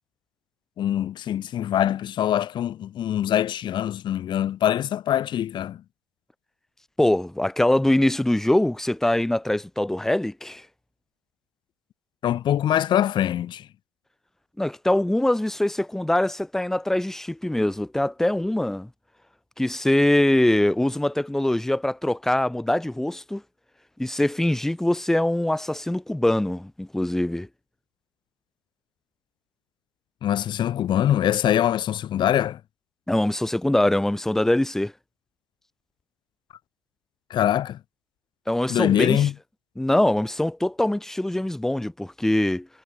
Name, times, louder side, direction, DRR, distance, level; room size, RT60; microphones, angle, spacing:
voice 1, 0.8-5.8 12.2-13.7 30.2-32.6 37.3-37.8 38.7-39.3, left 11 dB, 30° left, 1.7 m, -23 dB
voice 2, 7.0-10.6 14.6-18.9 19.6-23.4 24.0-27.5 33.1-34.9 38.5-39.3 39.8-42.7, left 1 dB, 5° left, 1.1 m, -23 dB
supercardioid pair, 125°, 15 cm